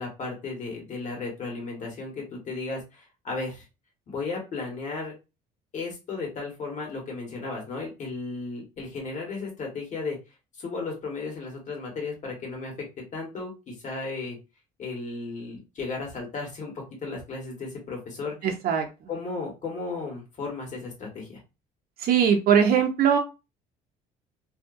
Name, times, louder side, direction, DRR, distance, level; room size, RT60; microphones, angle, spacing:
voice 1, 0.0-3.6 4.1-5.1 5.7-10.2 10.6-12.7 13.1-14.4 14.8-18.4 19.1-21.4, left 3 dB, 45° left, 0 dB, 1.4 m, -34 dB
voice 2, 22.0-23.2, right 7 dB, 65° right, 3 dB, 0.6 m, -20 dB
2.7 x 2.2 x 2.5 m, 0.28 s
cardioid pair, 110°, 17 cm